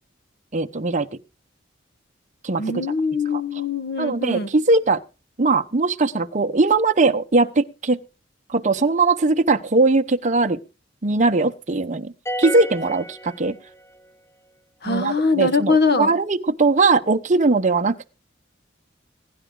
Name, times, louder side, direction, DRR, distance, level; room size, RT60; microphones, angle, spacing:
voice 1, 0.5-1.1 2.4-2.6 3.3-3.4 4.0-5.0 5.4-8.0 8.5-10.6 11.0-12.1 12.4-13.5 14.8-18.1, right 3 dB, 40° right, 0.9 m, -20 dB
voice 2, 2.6-4.5 14.8-16.1, left 4 dB, 60° left, 1.4 m, -22 dB
sound 1, 12.3-14.0, equal, 15° left, 0.8 m, -31 dB
20.5 x 10.5 x 3.8 m
head